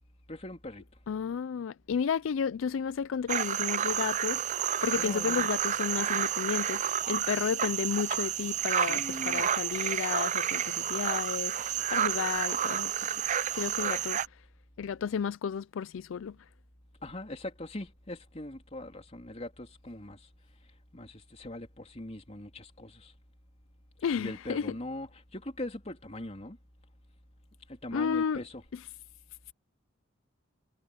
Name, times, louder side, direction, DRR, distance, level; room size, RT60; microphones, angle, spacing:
voice 1, 0.3-0.8 4.9-5.5 8.7-9.4 11.7-11.9 17.0-20.3 20.9-23.1 24.2-26.6 27.7-28.6, left 1 dB, 35° left, 3.4 m, -41 dB
voice 2, 1.1-13.0 13.5-14.2 14.8-16.4 24.0-24.7 27.9-28.4, left 7 dB, 80° left, 0.4 m, -32 dB
sound 1, 3.3-14.3, right 9 dB, 35° right, 0.4 m, -30 dB
head